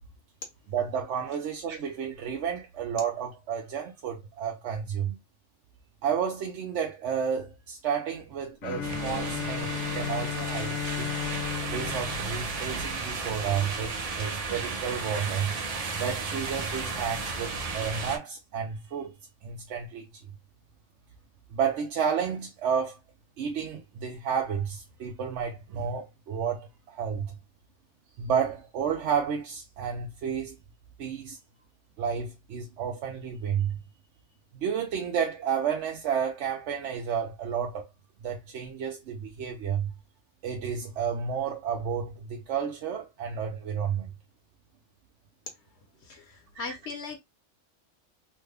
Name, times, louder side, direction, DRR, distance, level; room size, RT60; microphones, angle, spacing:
voice 1, 0.7-5.2 6.0-11.2 11.7-15.6 16.0-19.2 19.4-20.1 21.5-23.0 23.4-27.3 28.2-30.6 31.0-31.4 32.0-33.8 34.5-37.9 38.2-39.9 40.4-44.1 46.6-46.8, right 7 dB, 75° right, 0.9 m, -31 dB
Bowed string instrument, 8.6-13.5, left 10 dB, 85° left, 1.0 m, -35 dB
sound 1, 8.8-18.2, right 4 dB, 55° right, 0.4 m, -34 dB
voice 2, 46.0-47.2, left 4 dB, 70° left, 1.2 m, -39 dB
3.2 x 2.2 x 3.3 m
omnidirectional pair, 1.2 m